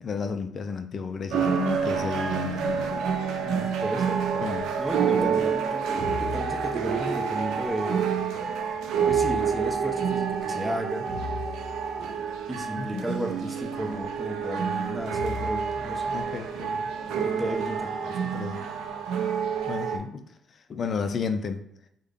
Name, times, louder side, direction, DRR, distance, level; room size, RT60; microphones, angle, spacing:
voice 1, 0.0-3.0 4.4-4.7 5.1-5.5 12.8-13.0 16.1-17.3 18.2-18.6 19.7-20.2 20.7-21.6, left 5 dB, 50° left, 8 dB, 0.4 m, -32 dB
sound 1, 1.3-20.0, right 6 dB, 90° right, 0.4 m, -28 dB
voice 2, 3.4-4.2 4.8-8.0 9.1-11.1 12.5-16.2 17.2-18.3, right 1 dB, 10° right, 3 dB, 0.6 m, -34 dB
3.6 x 2.1 x 3.4 m, 0.74 s
cardioid pair, 90°, 0 cm